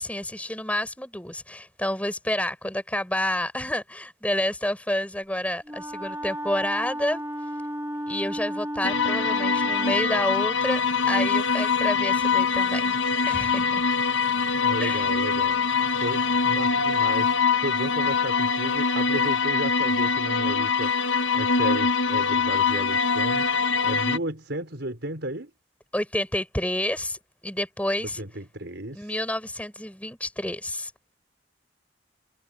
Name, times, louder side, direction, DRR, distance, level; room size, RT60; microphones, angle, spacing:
voice 1, 0.0-7.2 8.1-13.0 13.3-13.7 14.8-15.1 25.9-28.2 28.9-30.9, left 1 dB, 5° left, 7.6 m, -29 dB
Wind instrument woodwind instrument, 5.6-10.1, equal, 15° right, 2.6 m, -33 dB
sound 1, 8.8-24.2, left 5 dB, 85° left, 1.3 m, -23 dB
voice 2, 14.5-15.6 16.0-25.5 28.2-29.2, right 1 dB, 65° right, 4.7 m, -34 dB
head